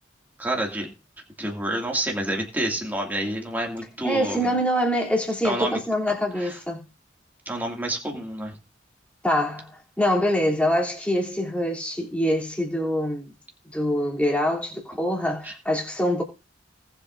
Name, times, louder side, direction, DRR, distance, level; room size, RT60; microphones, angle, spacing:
voice 1, 0.4-0.9 1.4-4.4 5.4-5.8 6.1-6.5 7.5-8.5 15.4-15.5, right 1 dB, 10° right, 2.3 m, -28 dB
voice 2, 4.0-6.8 9.2-9.7 10.0-13.3 13.7-16.2, equal, 5° left, 3.1 m, -24 dB
19.0 x 7.9 x 2.6 m
head